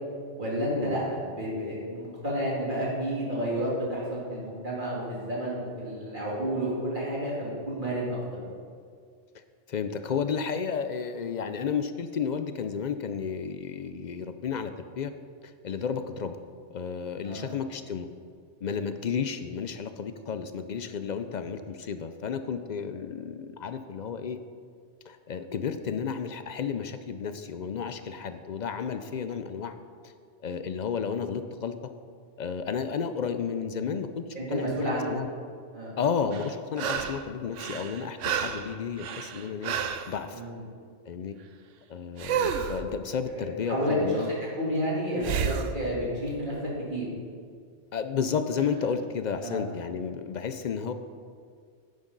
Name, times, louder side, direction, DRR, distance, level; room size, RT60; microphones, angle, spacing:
voice 1, 0.4-8.2 17.2-17.5 18.7-18.8 34.3-35.2 35.7-35.9 40.3-40.6 43.3-44.2 44.5-46.5 46.9-47.1 49.4-49.6, equal, 40° right, -6 dB, 3.1 m, -30 dB
voice 2, 9.7-15.1 15.4-16.4 16.7-18.1 18.6-24.4 25.1-29.7 30.4-31.7 32.4-35.3 36.0-39.8 40.1-40.4 41.1-41.4 41.9-44.3 47.9-50.9, left 6 dB, 55° left, 9 dB, 0.5 m, -32 dB
sound 1, 36.3-37.3 37.6-40.1 42.2-42.8 45.2-45.7 48.6-48.7, right 7 dB, 90° right, 1.0 m, -30 dB
10.5 x 9.7 x 3.9 m, 2.1 s
omnidirectional pair, 1.2 m